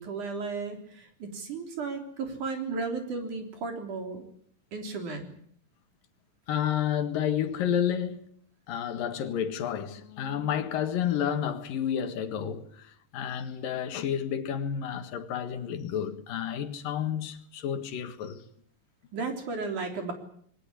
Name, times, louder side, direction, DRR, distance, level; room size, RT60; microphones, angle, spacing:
voice 1, 0.0-4.2 4.7-5.3 19.1-20.1, right 4 dB, 60° right, 4.9 m, -34 dB
voice 2, 6.5-8.3 8.7-18.4, left 9 dB, 75° left, 3.3 m, -30 dB
22.0 x 18.5 x 9.8 m
omnidirectional pair, 4.1 m